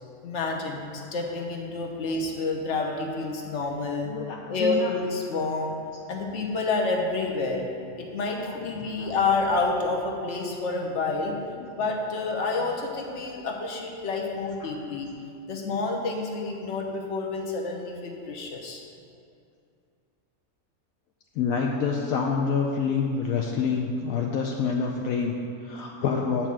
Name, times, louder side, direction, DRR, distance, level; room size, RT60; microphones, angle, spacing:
voice 1, 0.2-4.2 4.5-5.8 6.1-7.6 8.0-11.4 11.7-15.1 15.5-18.8, left 3 dB, 55° left, 0 dB, 1.3 m, -29 dB
voice 2, 4.1-4.9 8.5-8.6 9.0-9.1 11.6-11.7 14.6-14.7 21.4-26.5, left 5 dB, 75° left, 1 dB, 1.1 m, -27 dB
8.6 x 4.5 x 7.4 m, 2.4 s
omnidirectional pair, 1.5 m